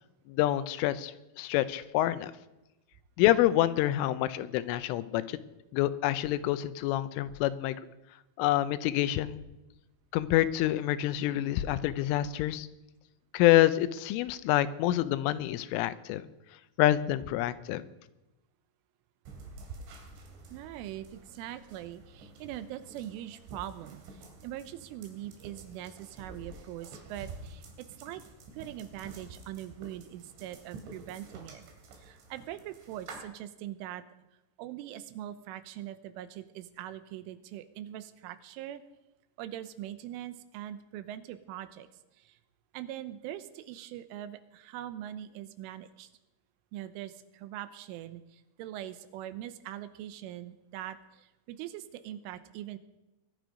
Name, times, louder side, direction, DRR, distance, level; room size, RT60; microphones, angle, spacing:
voice 1, 0.3-2.3 3.2-5.4 5.7-7.8 8.4-9.4 10.1-12.7 13.3-16.2 16.8-17.8, left 14 dB, 90° left, 13 dB, 3.3 m, -27 dB
sound 1, 19.3-33.2, right 3 dB, 70° right, 4.6 m, -49 dB
voice 2, 20.5-28.2 28.5-31.6 32.0-34.0 34.6-38.8 39.4-41.9 42.2-42.4 42.7-46.1 46.7-52.8, right 12 dB, 90° right, 12 dB, 3.4 m, -42 dB
21.0 x 12.5 x 5.1 m, 0.98 s
omnidirectional pair, 5.6 m